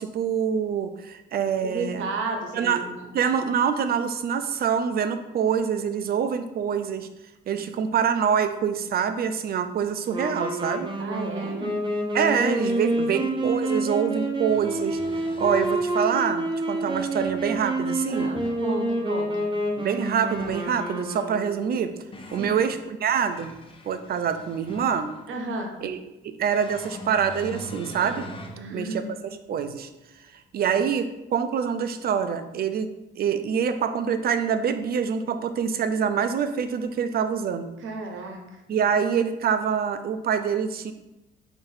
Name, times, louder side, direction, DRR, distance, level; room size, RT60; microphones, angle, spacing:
voice 1, 0.0-2.1 2.5-2.8 3.1-7.1 7.5-10.9 12.1-15.0 15.4-18.3 19.8-21.9 22.3-23.5 23.9-25.1 25.8-26.0 26.2-28.3 28.7-29.1 29.5-29.9 30.5-32.9 33.2-37.7 38.7-40.9, right 7 dB, 50° right, 10 dB, 0.4 m, -25 dB
voice 2, 1.6-3.0 11.0-11.7 18.1-19.5 22.4-22.6 25.3-25.7 28.6-29.1 37.8-38.6, right 3 dB, 80° right, 2 dB, 0.8 m, -33 dB
Wind instrument woodwind instrument, 10.0-21.8, right 1 dB, 25° right, 0.8 m, -28 dB
sound 1, 13.3-13.4 14.2-15.9 16.9-17.7 18.1-18.6 20.2-20.7 21.6-22.6 23.1-25.3 26.5-28.6 29.2-29.3 30.8-30.9, left 1 dB, 25° left, 0.5 m, -42 dB
3.7 x 2.6 x 4.0 m, 0.97 s
cardioid pair, 90°, 20 cm